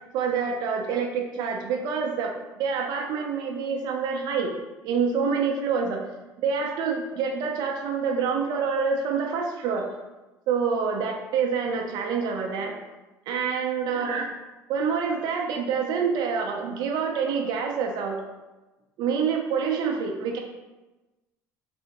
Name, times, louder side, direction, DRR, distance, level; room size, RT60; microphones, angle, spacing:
voice 1, 0.1-4.5 4.8-6.0 6.4-9.9 10.5-12.8 13.3-14.3 14.7-18.2 19.0-20.4, right 6 dB, 65° right, 2 dB, 0.5 m, -27 dB
3.6 x 2.1 x 2.8 m, 1.1 s
supercardioid pair, 95°, 8 cm